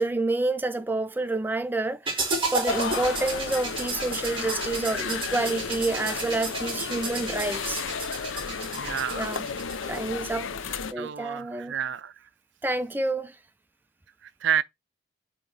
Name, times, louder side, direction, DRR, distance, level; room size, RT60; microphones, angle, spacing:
voice 1, 0.0-7.8 9.1-9.5 9.8-10.6 10.9-11.7 12.6-13.4, right 2 dB, 10° right, 0.4 m, -28 dB
sound 1, 2.1-10.1, right 3 dB, 25° right, 2.0 m, -33 dB
sound 2, 2.7-10.9, left 6 dB, 90° left, 0.6 m, -33 dB
voice 2, 8.8-9.3 10.7-12.1 14.4-14.6, right 9 dB, 70° right, 0.4 m, -29 dB
8.8 x 3.0 x 3.9 m
head